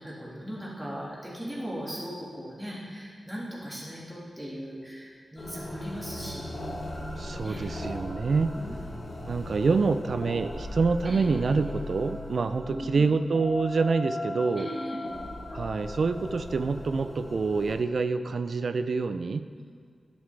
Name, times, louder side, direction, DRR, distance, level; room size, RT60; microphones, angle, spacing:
voice 1, 0.0-6.6 7.4-7.6 8.3-9.2 11.0-11.2 12.7-13.1 14.6-15.0, equal, 5° right, -7 dB, 2.0 m, -38 dB
sound 1, 5.4-17.7, left 1 dB, 60° left, 1.9 m, -38 dB
voice 2, 7.2-8.6 9.3-14.7 15.5-19.5, right 4 dB, 60° right, 11 dB, 0.3 m, -26 dB
10.5 x 7.3 x 3.3 m, 2.1 s
wide cardioid pair, 110°, 0 cm